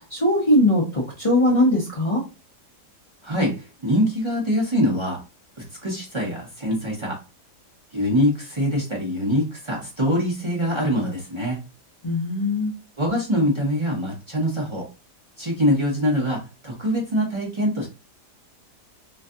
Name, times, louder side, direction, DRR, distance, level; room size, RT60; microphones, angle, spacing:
voice 1, 0.1-2.2 12.0-12.7, left 1 dB, 40° left, -4 dB, 0.5 m, -20 dB
voice 2, 3.2-5.2 5.6-7.2 7.9-11.6 13.0-14.9 15.4-17.9, equal, 35° right, -3 dB, 0.4 m, -24 dB
3.1 x 2.6 x 2.4 m, 0.29 s
omnidirectional pair, 1.8 m